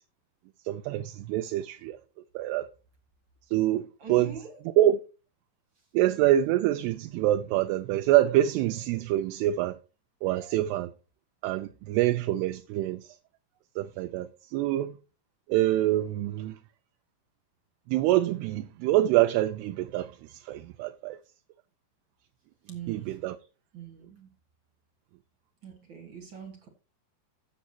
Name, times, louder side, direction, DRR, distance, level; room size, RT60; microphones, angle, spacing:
voice 1, 0.7-2.0 2.4-2.7 3.5-4.3 4.8-5.0 5.9-9.8 10.2-10.9 11.4-13.0 13.8-14.9 15.5-16.6 17.9-21.2 22.9-23.4, right 13 dB, 80° right, 2.5 m, -26 dB
voice 2, 4.0-4.6 22.7-23.2 23.7-24.3 25.6-26.7, right 6 dB, 40° right, 1.8 m, -42 dB
15.5 x 7.1 x 2.9 m
omnidirectional pair, 5.0 m